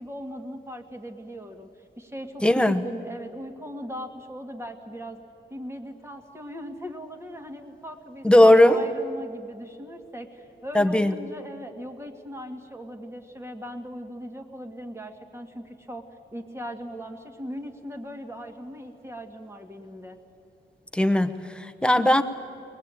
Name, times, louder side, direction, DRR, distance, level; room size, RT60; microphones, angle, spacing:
voice 1, 0.0-1.7 2.0-5.2 5.5-16.0 16.3-20.2, equal, 15° right, 4 dB, 2.0 m, -39 dB
voice 2, 2.4-2.8 8.2-8.8 10.7-11.1 20.9-22.2, left 1 dB, 5° left, 7 dB, 1.0 m, -18 dB
23.5 x 20.0 x 9.0 m, 2.5 s
wide cardioid pair, 120°, 19 cm